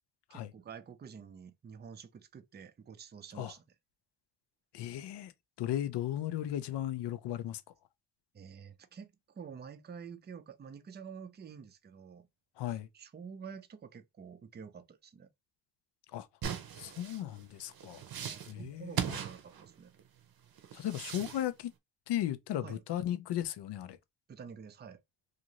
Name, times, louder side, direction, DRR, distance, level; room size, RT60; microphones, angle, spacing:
voice 1, 0.3-3.6 8.3-12.3 12.9-15.3 18.2-19.9 22.6-22.8 24.3-25.0, right 6 dB, 25° right, 0.4 m, -49 dB
voice 2, 4.7-5.3 5.6-7.6 12.6-12.9 16.1-16.3 16.8-18.0 18.4-19.2 20.7-21.7 22.1-24.0, left 12 dB, 85° left, 0.5 m, -36 dB
sound 1, 16.4-20.0 20.6-21.4, right 8 dB, 60° right, 0.7 m, -39 dB
2.6 x 2.5 x 2.8 m
cardioid pair, 100°, 40 cm